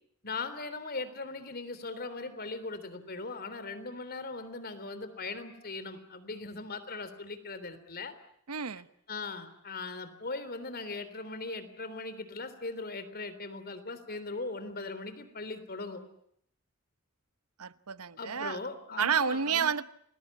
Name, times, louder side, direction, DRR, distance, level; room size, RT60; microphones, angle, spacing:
voice 1, 0.2-8.1 9.1-16.0 18.2-19.7, left 3 dB, 45° left, 3.5 m, -39 dB
voice 2, 8.5-8.9 17.6-18.6 19.0-19.8, right 6 dB, 85° right, 1.0 m, -30 dB
30.0 x 21.0 x 8.5 m
head